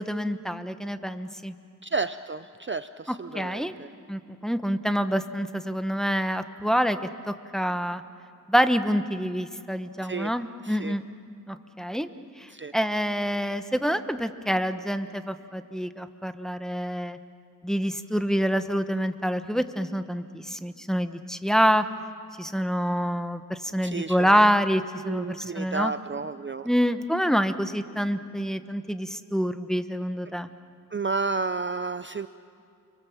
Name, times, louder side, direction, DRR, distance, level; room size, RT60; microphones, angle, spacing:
voice 1, 0.0-1.5 3.3-3.7 4.1-7.0 7.3-8.0 8.5-11.0 11.5-12.1 12.4-17.2 17.6-21.9 22.4-25.9 26.6-30.5, equal, ahead, 9 dB, 1.1 m, -26 dB
voice 2, 1.8-3.9 10.0-10.3 10.6-10.9 12.5-12.7 23.8-24.5 25.0-26.7 30.9-32.3, right 4 dB, 35° right, 12 dB, 0.5 m, -32 dB
30.0 x 23.5 x 7.3 m, 2.4 s
wide cardioid pair, 60°, 33 cm